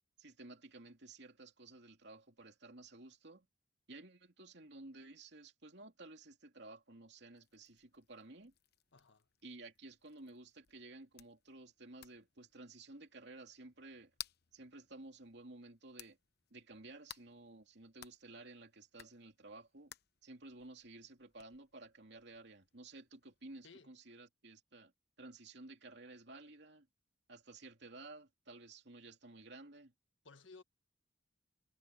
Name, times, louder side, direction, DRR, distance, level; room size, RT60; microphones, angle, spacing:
voice 1, 0.2-3.5 3.9-8.5 9.4-14.1 14.5-16.2 16.5-19.9 20.2-24.9 25.2-26.9 27.3-29.9, right 2 dB, 65° right, 2.9 m, -54 dB
sound 1, 7.3-23.7, left 11 dB, 60° left, 1.0 m, -59 dB
voice 2, 8.9-9.3 23.6-23.9 30.2-30.6, left 4 dB, 80° left, 1.5 m, -57 dB
head